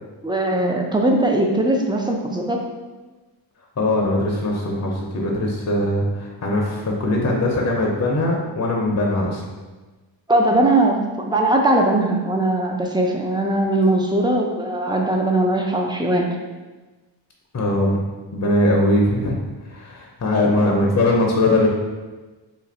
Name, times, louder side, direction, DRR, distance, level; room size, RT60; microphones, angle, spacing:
voice 1, 0.2-2.6 10.3-16.3, right 1 dB, 10° right, 1 dB, 0.4 m, -20 dB
voice 2, 3.8-9.4 17.5-18.0 18.3-19.3 19.7-21.7, left 1 dB, 35° left, -2 dB, 0.6 m, -20 dB
2.7 x 2.5 x 4.1 m, 1.2 s
cardioid pair, 75°, 47 cm